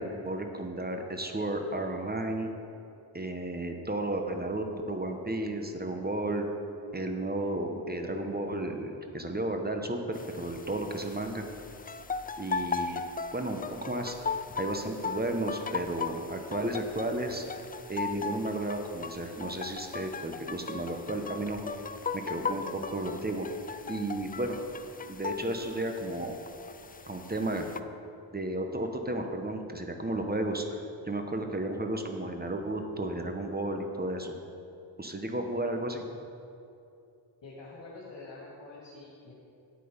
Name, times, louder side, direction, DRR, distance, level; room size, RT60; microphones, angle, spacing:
voice 1, 0.0-2.5 3.1-6.5 6.9-11.4 12.4-13.0 13.3-14.1 14.6-17.4 17.9-21.6 22.1-23.5 23.9-24.6 25.1-26.3 27.1-27.7 28.3-34.3 35.0-36.1, right 1 dB, 20° right, 4 dB, 1.0 m, -33 dB
sound 1, 10.1-27.8, left 5 dB, 20° left, 0.3 m, -38 dB
voice 2, 37.4-39.3, left 3 dB, 65° left, -6 dB, 2.2 m, -46 dB
9.3 x 8.3 x 5.2 m, 2.7 s
cardioid pair, 85°, 46 cm